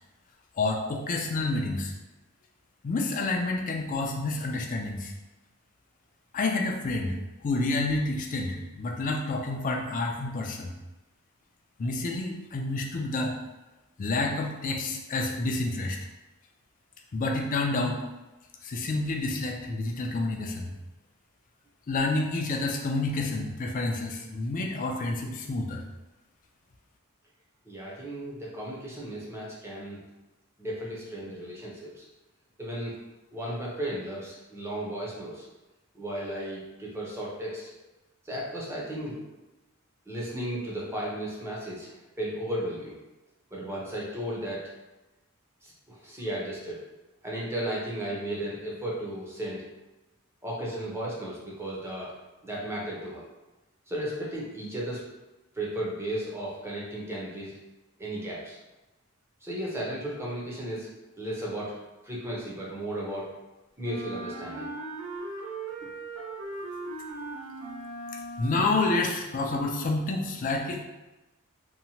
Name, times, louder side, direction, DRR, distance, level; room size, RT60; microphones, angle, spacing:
voice 1, 0.6-1.9 2.8-5.1 6.3-7.1 7.4-10.7 11.8-13.3 14.0-16.0 17.1-18.0 18.6-20.7 21.9-25.8 68.4-70.8, left 2 dB, 40° left, 2 dB, 0.3 m, -29 dB
voice 2, 27.6-30.0 30.6-32.0 32.6-33.0 33.3-35.4 35.9-37.7 38.2-39.2 40.1-43.0 43.5-44.6 45.6-46.8 47.2-49.6 50.4-52.1 52.4-53.2 53.9-55.0 55.5-57.5 58.0-58.6 59.4-60.9 61.2-61.7 62.0-63.3 63.8-64.7, right 1 dB, 10° right, -5 dB, 0.6 m, -35 dB
Wind instrument woodwind instrument, 63.8-68.8, right 2 dB, 80° right, 0.6 m, -38 dB
2.8 x 2.1 x 2.7 m, 1.0 s
head